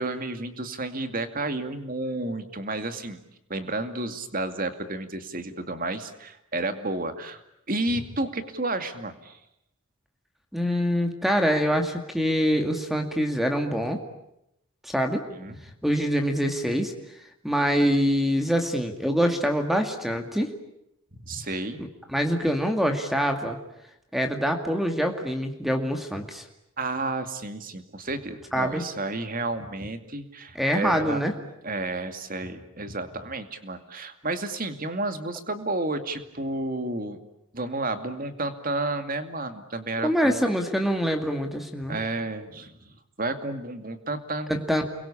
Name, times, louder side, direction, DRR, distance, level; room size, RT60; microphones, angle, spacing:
voice 1, 0.0-3.2 3.5-7.4 7.7-9.4 15.4-15.6 21.2-21.8 26.8-31.2 31.6-37.2 37.5-40.4 41.9-44.5, right 2 dB, 40° right, 9 dB, 2.4 m, -31 dB
voice 2, 10.5-14.0 14.8-15.2 15.8-16.9 17.4-20.5 21.8-23.6 24.1-26.4 28.5-28.8 30.5-31.3 40.0-42.0 44.5-44.8, equal, ahead, 4 dB, 2.2 m, -25 dB
29.5 x 23.5 x 8.6 m, 0.82 s
head